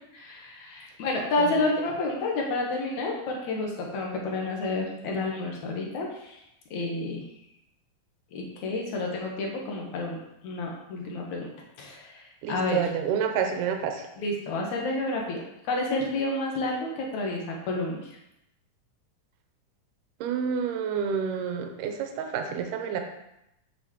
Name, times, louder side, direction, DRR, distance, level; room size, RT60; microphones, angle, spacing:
voice 1, 0.1-6.4 6.7-7.2 8.3-11.5 11.8-12.8 14.2-15.4 15.6-18.2, left 2 dB, 70° left, -1 dB, 2.2 m, -30 dB
voice 2, 12.4-14.1 20.2-23.0, right 7 dB, 80° right, 5 dB, 2.2 m, -29 dB
8.3 x 6.0 x 2.9 m, 0.84 s
omnidirectional pair, 4.0 m